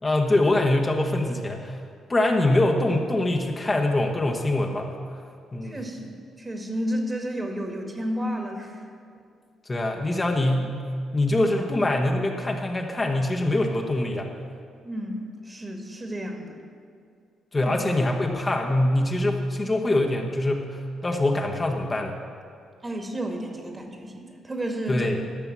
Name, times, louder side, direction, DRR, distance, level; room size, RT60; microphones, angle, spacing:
voice 1, 0.0-1.8 2.1-4.9 5.5-5.8 9.7-10.8 11.1-14.3 17.5-22.2 24.9-25.2, left 1 dB, 30° left, 1 dB, 1.3 m, -24 dB
voice 2, 5.6-8.8 14.8-16.6 17.6-17.8 22.8-25.2, equal, 25° right, 3 dB, 2.0 m, -32 dB
12.0 x 5.9 x 7.5 m, 2.3 s
hypercardioid pair, 45°, 0 cm